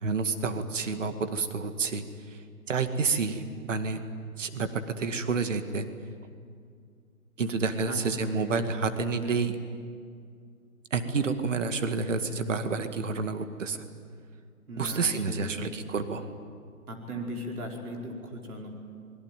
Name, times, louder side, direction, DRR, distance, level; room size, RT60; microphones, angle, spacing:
voice 1, 0.0-2.4 2.7-4.0 4.4-5.9 7.4-9.5 10.9-13.8 14.8-16.3, right 4 dB, 55° right, 8 dB, 2.2 m, -29 dB
voice 2, 7.9-8.7 14.7-15.8 16.9-18.7, equal, 75° right, 0 dB, 5.3 m, -38 dB
26.5 x 22.0 x 9.2 m, 2.2 s
hypercardioid pair, 170°, 45 cm